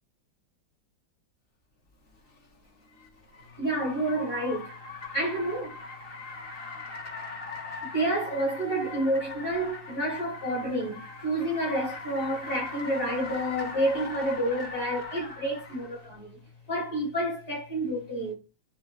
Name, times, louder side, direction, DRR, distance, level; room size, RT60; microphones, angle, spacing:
Car, 2.1-16.0, left 3 dB, 35° left, 1.5 m, -41 dB
voice 1, 3.6-4.7 5.1-5.8 7.9-16.4 16.7-18.3, right 1 dB, 55° left, 4.5 m, -29 dB
10.5 x 3.5 x 3.2 m
omnidirectional pair, 2.0 m